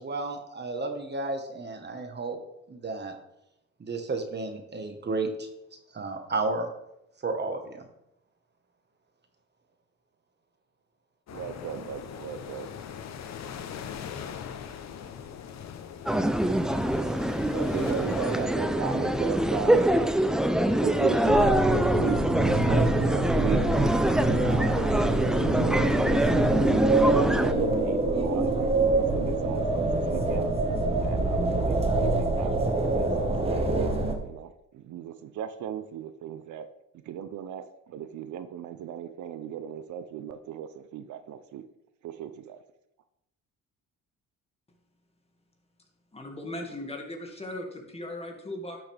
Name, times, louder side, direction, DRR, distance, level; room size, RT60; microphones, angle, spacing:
voice 1, 0.0-2.4 2.7-3.2 3.8-5.5 5.9-6.7 7.2-7.8, right 3 dB, 35° right, 1.5 m, -32 dB
sound 1, 11.3-19.9, left 8 dB, 60° left, 0.9 m, -41 dB
voice 2, 11.3-12.7 17.5-20.1 20.8-23.6 24.4-26.3 26.8-28.5 28.8-30.5 31.0-36.7 37.1-37.6 37.9-41.6 42.0-42.6, right 9 dB, 75° right, 0.7 m, -36 dB
sound 2, 16.1-27.5, right 1 dB, ahead, 0.5 m, -25 dB
sound 3, 21.2-34.1, right 2 dB, 20° right, 1.5 m, -25 dB
voice 3, 46.1-48.8, left 1 dB, 20° left, 2.1 m, -38 dB
12.0 x 6.2 x 3.5 m
cardioid pair, 90°, 30 cm